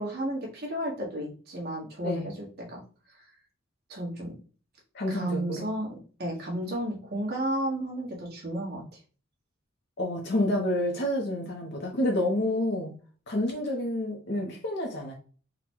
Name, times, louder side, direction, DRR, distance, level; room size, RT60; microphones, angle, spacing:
voice 1, 0.0-2.8 3.9-4.3 5.1-9.0, right 1 dB, 50° right, -2 dB, 1.4 m, -33 dB
voice 2, 4.9-5.6 10.0-12.9 13.3-15.1, left 1 dB, 55° left, 0 dB, 0.8 m, -29 dB
3.9 x 2.2 x 4.4 m, 0.39 s
head